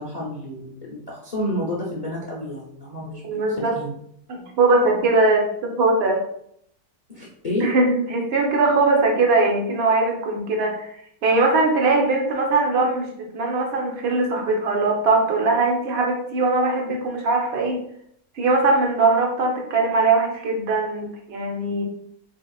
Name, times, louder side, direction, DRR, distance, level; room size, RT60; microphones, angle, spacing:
voice 1, 0.0-4.0 7.1-7.7, left 1 dB, 65° left, -5 dB, 0.4 m, -30 dB
voice 2, 3.3-3.7 4.3-6.2 7.6-10.9 11.2-17.8 18.4-21.8, right 3 dB, 75° right, 1 dB, 0.5 m, -20 dB
4.6 x 2.9 x 2.3 m, 0.70 s
omnidirectional pair, 1.9 m